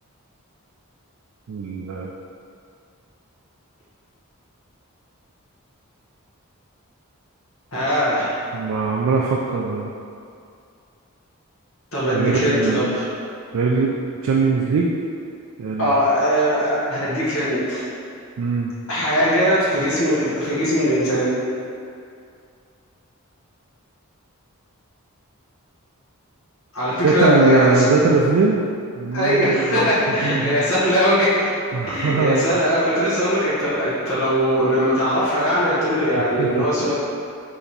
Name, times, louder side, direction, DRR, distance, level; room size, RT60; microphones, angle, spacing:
voice 1, 1.5-2.1 8.5-9.9 12.1-12.8 13.5-13.9 14.2-14.9 15.6-15.9 18.4-18.7 27.0-28.7 29.0-29.9 30.2-30.7 31.7-32.4 36.4-36.7, right 4 dB, 75° right, -2 dB, 0.3 m, -21 dB
voice 2, 7.7-8.4 11.9-13.0 15.8-17.9 18.9-21.4 26.7-27.9 29.1-31.5 31.9-36.9, equal, 70° left, -9 dB, 1.0 m, -20 dB
3.3 x 2.9 x 4.0 m, 2.4 s
head